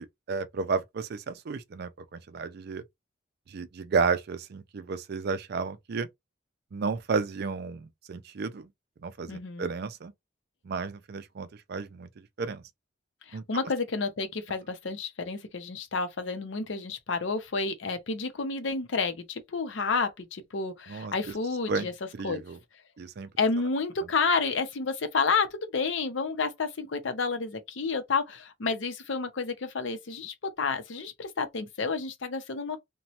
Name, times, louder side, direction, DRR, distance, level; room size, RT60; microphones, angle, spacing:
voice 1, 0.0-2.8 3.5-6.1 6.7-8.7 9.0-10.1 10.6-12.6 13.3-13.4 20.9-21.3 21.7-22.6 23.0-23.3, right 5 dB, 55° right, 0.4 m, -32 dB
voice 2, 9.3-9.7 13.3-21.9 22.2-22.4 23.4-32.8, left 4 dB, 70° left, 0.6 m, -30 dB
2.9 x 2.2 x 2.8 m
head